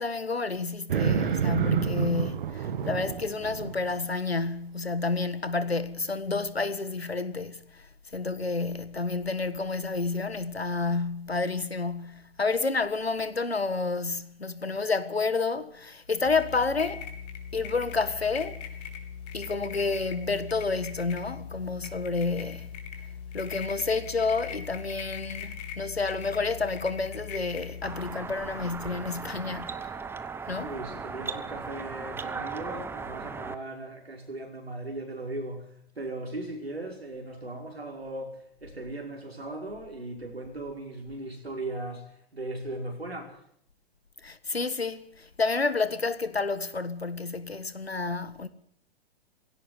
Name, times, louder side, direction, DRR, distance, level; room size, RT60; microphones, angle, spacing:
voice 1, 0.0-7.9 8.1-17.1 17.5-18.6 19.3-22.7 23.3-29.9 30.5-30.8 44.2-48.5, left 3 dB, 90° left, 1.6 m, -30 dB
sound 1, 0.9-4.0, right 8 dB, 60° right, 2.1 m, -28 dB
sound 2, 16.2-28.1, left 7 dB, 45° left, 3.8 m, -40 dB
sound 3, 27.8-33.5, right 5 dB, 5° right, 0.9 m, -37 dB
voice 2, 30.6-43.4, right 2 dB, 90° right, 5.6 m, -38 dB
17.0 x 17.0 x 9.6 m
figure-of-eight pair, 115°, 30 cm